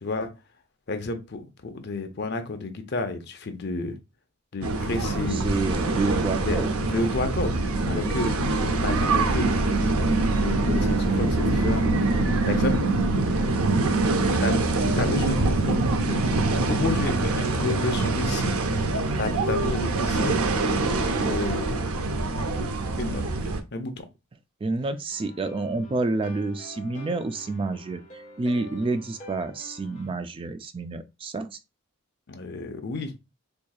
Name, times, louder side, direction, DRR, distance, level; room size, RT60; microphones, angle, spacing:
voice 1, 0.0-0.3 0.9-4.0 4.5-5.4 6.4-7.6 7.9-8.3 8.8-9.8 10.4-11.9 12.4-12.8 14.4-14.6 15.0-16.2 16.7-18.5 19.2-20.4 21.3-21.9 23.0-23.2 23.7-24.1 32.3-33.1, left 3 dB, 50° left, 0.6 m, -31 dB
sound 1, 4.6-23.6, right 2 dB, 85° right, 0.6 m, -24 dB
voice 2, 5.1-6.7 7.8-8.2 24.6-31.6, right 3 dB, 25° right, 0.3 m, -29 dB
sound 2, 25.1-30.1, equal, 35° left, 1.1 m, -46 dB
4.5 x 2.6 x 2.3 m
head